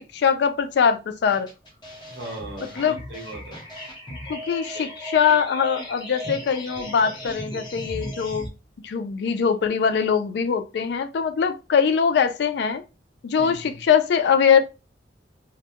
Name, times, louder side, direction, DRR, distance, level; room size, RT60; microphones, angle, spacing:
voice 1, 0.0-1.5 2.8-3.0 4.3-8.5 8.8-12.8 13.2-14.6, left 7 dB, 65° left, 0.3 m, -22 dB
sound 1, 1.3-8.5, equal, 25° left, 0.6 m, -37 dB
voice 2, 2.1-3.6 13.4-13.8, right 1 dB, 70° right, 0.9 m, -38 dB
2.2 x 2.1 x 2.8 m
head